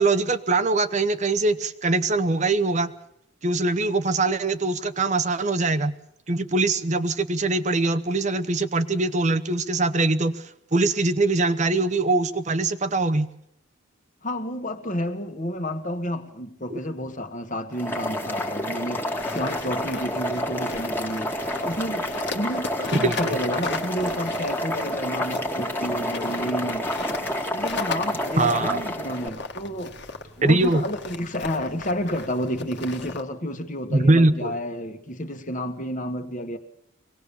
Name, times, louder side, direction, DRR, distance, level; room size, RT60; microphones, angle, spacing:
voice 1, 0.0-2.9 3.4-5.9 6.3-10.4 10.7-13.3 16.7-16.8 23.0-23.4 28.4-28.8 30.4-30.8 33.9-34.5, right 2 dB, 35° right, 0.9 m, -22 dB
voice 2, 14.2-21.3 21.7-26.9 27.5-29.9 30.4-36.6, equal, 35° left, 1.8 m, -30 dB
Boiling, 17.7-29.3, equal, 10° left, 1.9 m, -29 dB
sound 1, 19.2-33.2, left 4 dB, 55° left, 1.9 m, -38 dB
24.5 x 18.5 x 7.1 m
head